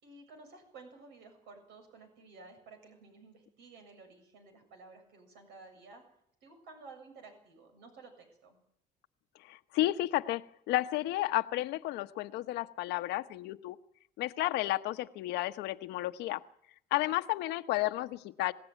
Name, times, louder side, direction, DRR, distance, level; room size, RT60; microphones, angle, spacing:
voice 1, 0.0-6.0 6.4-8.6 17.1-17.2, right 3 dB, 85° right, 4 dB, 7.3 m, -54 dB
voice 2, 9.4-13.8 14.2-16.4 16.9-18.5, left 16 dB, 90° left, 10 dB, 1.2 m, -32 dB
27.0 x 16.5 x 9.3 m, 0.73 s
cardioid pair, 110°, 17 cm